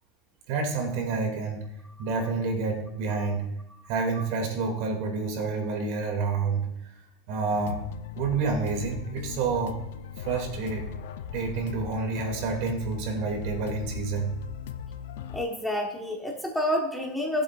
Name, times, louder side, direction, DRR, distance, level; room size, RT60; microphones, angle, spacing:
voice 1, 0.5-1.6 2.0-3.5 3.9-6.7 7.3-7.8 8.1-9.8 10.2-10.9 11.3-14.3, right 4 dB, 60° right, 2 dB, 2.6 m, -28 dB
sound 1, 7.5-15.4, left 8 dB, 85° left, 0.6 m, -38 dB
voice 2, 15.3-17.4, left 1 dB, 5° left, 0 dB, 1.3 m, -29 dB
18.0 x 7.8 x 2.5 m, 0.80 s
supercardioid pair, 150°, 0 cm